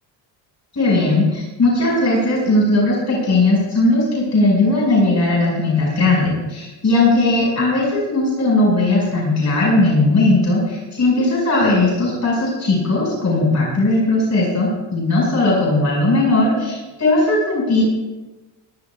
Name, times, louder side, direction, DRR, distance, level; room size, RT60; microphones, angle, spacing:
voice 1, 0.7-17.8, left 2 dB, 35° left, -3 dB, 5.6 m, -17 dB
21.0 x 14.0 x 2.4 m, 1.1 s
cardioid pair, 95°, 45 cm